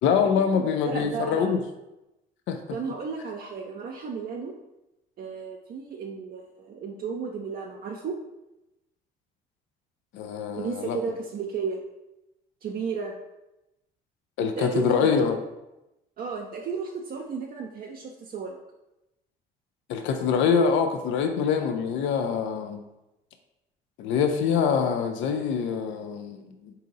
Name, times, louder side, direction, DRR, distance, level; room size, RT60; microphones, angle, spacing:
voice 1, 0.0-1.6 2.5-2.6 10.1-11.0 14.4-15.4 19.9-22.8 24.0-26.7, left 6 dB, 70° left, 6 dB, 0.5 m, -24 dB
voice 2, 0.5-1.6 2.7-4.5 5.2-8.1 10.6-11.8 12.6-13.1 14.4-15.2 16.2-18.6 22.7-22.8, right 5 dB, 45° right, -1 dB, 0.5 m, -33 dB
3.7 x 2.8 x 3.9 m, 0.94 s
supercardioid pair, 75°, 20 cm